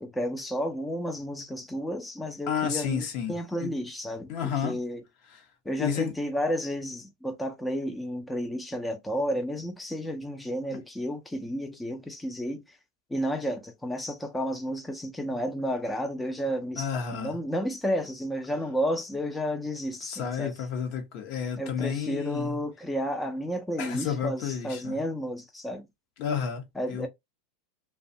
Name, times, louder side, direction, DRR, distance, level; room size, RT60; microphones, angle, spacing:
voice 1, 0.0-5.0 5.7-12.8 13.1-20.7 21.6-25.9 26.8-27.1, equal, 5° left, 0.4 m, -32 dB
voice 2, 2.5-3.7 4.3-4.8 5.3-5.4 5.8-6.1 16.8-17.4 20.0-22.6 23.8-25.0 26.2-27.1, left 7 dB, 55° left, 0.8 m, -31 dB
2.4 x 2.2 x 2.6 m
supercardioid pair, 125°, 0 cm